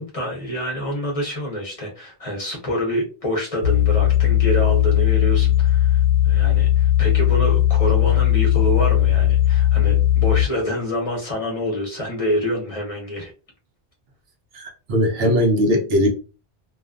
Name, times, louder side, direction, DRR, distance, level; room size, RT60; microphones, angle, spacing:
voice 1, 0.0-13.3, equal, 40° left, 0.7 m, -27 dB
sound 1, 3.6-10.4, left 12 dB, 75° left, 0.8 m, -17 dB
voice 2, 14.5-16.1, equal, 75° right, 0.9 m, -19 dB
2.4 x 2.2 x 2.3 m
omnidirectional pair, 1.0 m